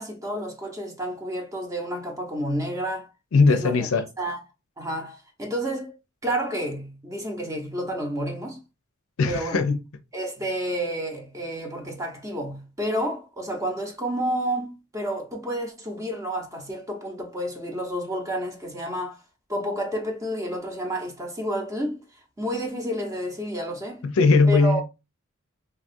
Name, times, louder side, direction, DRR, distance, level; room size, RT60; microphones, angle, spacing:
voice 1, 0.0-3.1 3.5-3.8 4.2-4.4 4.8-5.9 6.2-8.6 9.3-9.6 10.1-19.2 19.5-22.0 22.4-24.0 24.5-24.8, right 1 dB, 15° right, 0.7 m, -30 dB
voice 2, 3.3-4.0 9.2-9.8 24.0-24.8, left 4 dB, 70° left, 0.5 m, -19 dB
3.3 x 2.3 x 2.5 m
head